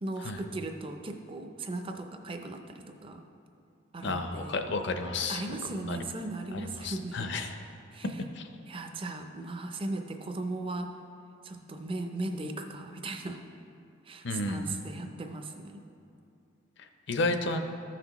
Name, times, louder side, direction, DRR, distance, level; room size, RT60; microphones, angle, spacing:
voice 1, 0.0-3.2 3.9-4.6 5.3-7.3 7.9-8.2 8.7-11.0 11.4-13.4 14.0-15.8, right 2 dB, 25° right, 5 dB, 0.4 m, -37 dB
voice 2, 4.0-5.4 5.8-6.0 6.7-7.5 8.3-8.5 14.2-14.9 17.1-17.6, left 2 dB, 60° left, 7 dB, 0.5 m, -31 dB
13.5 x 5.9 x 3.0 m, 2.6 s
head